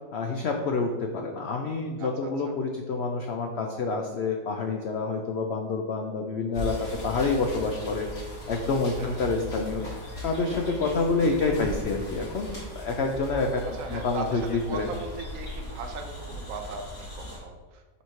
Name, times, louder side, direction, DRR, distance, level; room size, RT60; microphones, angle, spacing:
voice 1, 0.1-13.6 13.9-14.9, left 3 dB, 85° left, 3 dB, 0.5 m, -28 dB
voice 2, 2.0-2.5 9.0-9.2 13.7-17.8, right 3 dB, 60° right, 4 dB, 1.0 m, -39 dB
sound 1, 6.5-17.4, equal, 65° left, 2.6 m, -38 dB
5.6 x 3.0 x 5.6 m, 1.3 s
omnidirectional pair, 1.8 m